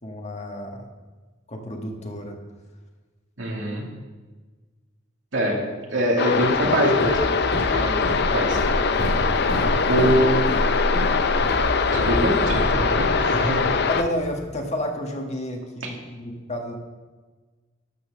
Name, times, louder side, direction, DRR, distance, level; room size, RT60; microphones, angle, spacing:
voice 1, 0.0-0.9 1.5-2.4 7.8-8.0 9.5-10.1 13.9-16.8, equal, 35° left, 2 dB, 1.5 m, -31 dB
voice 2, 3.4-3.9 5.3-5.6 5.9-7.2 7.6-8.6 9.9-10.3 11.9-13.7, right 1 dB, 85° right, -1 dB, 2.5 m, -23 dB
sound 1, 6.2-14.0, left 5 dB, 60° left, 0.6 m, -22 dB
Walk footsteps, 6.4-14.3, equal, 80° left, 3.7 m, -28 dB
12.0 x 5.6 x 6.7 m, 1.3 s
head